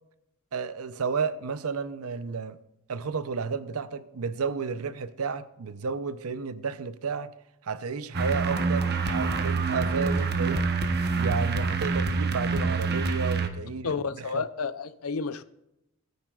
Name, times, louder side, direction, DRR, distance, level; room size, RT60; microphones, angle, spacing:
voice 1, 0.5-2.6 2.9-7.3 7.6-10.6 11.1-13.9 14.1-14.4, right 5 dB, 80° right, 0.7 m, -32 dB
sound 1, 8.1-13.5, right 4 dB, 50° right, 1.0 m, -26 dB
voice 2, 13.8-15.4, left 5 dB, 70° left, 0.6 m, -31 dB
18.0 x 9.3 x 2.4 m
head